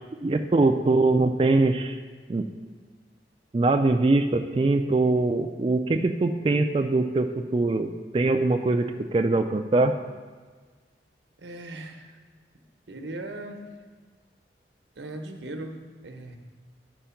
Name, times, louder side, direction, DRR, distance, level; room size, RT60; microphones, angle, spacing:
voice 1, 0.2-2.0 2.3-2.5 3.5-9.9, right 2 dB, 30° right, 5 dB, 0.3 m, -22 dB
voice 2, 11.4-12.2 12.9-13.7 15.0-16.4, right 1 dB, 90° right, 5 dB, 0.9 m, -38 dB
10.0 x 4.5 x 5.8 m, 1.5 s
head